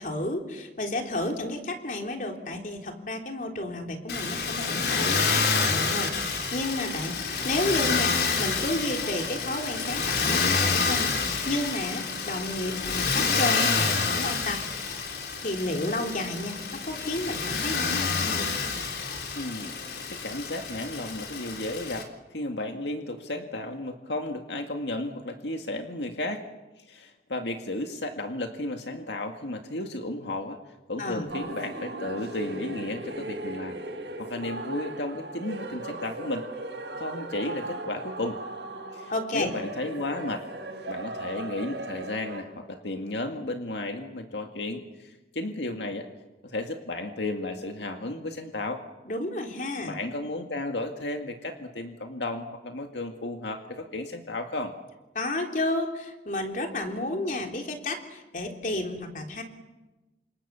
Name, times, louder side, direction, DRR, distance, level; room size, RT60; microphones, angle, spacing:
voice 1, 0.0-14.6 15.4-18.5 31.0-31.3 39.1-39.5 49.1-50.0 55.2-59.4, left 1 dB, 45° left, 3 dB, 3.5 m, -32 dB
Motor vehicle (road), 4.1-22.0, left 4 dB, 70° left, 3.8 m, -28 dB
voice 2, 19.4-26.4 26.8-30.6 30.9-33.8 34.2-36.5 37.0-38.4 38.9-40.5 40.9-46.1 46.4-48.8 49.9-54.7, left 2 dB, 85° left, 4 dB, 2.1 m, -33 dB
sound 1, 31.3-42.4, right 2 dB, 80° right, 7.5 m, -37 dB
29.0 x 26.5 x 7.1 m, 1.1 s
head